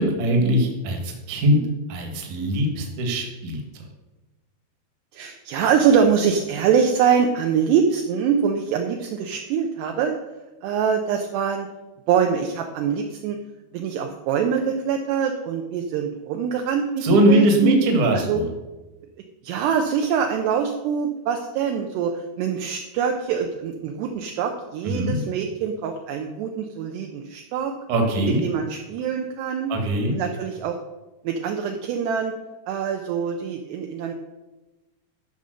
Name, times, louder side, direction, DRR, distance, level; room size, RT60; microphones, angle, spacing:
voice 1, 0.0-1.6 1.9-3.8 17.0-18.5 24.8-25.2 27.9-28.4 29.7-30.2, right 1 dB, 55° right, 3 dB, 2.6 m, -21 dB
voice 2, 5.1-10.2 10.6-11.7 12.1-13.4 13.7-17.8 18.1-18.4 19.4-27.7 28.3-29.7 30.1-30.8 31.2-32.3 32.7-34.1, right 7 dB, 80° right, 3 dB, 2.7 m, -24 dB
13.0 x 5.4 x 6.4 m, 1.1 s
omnidirectional pair, 5.2 m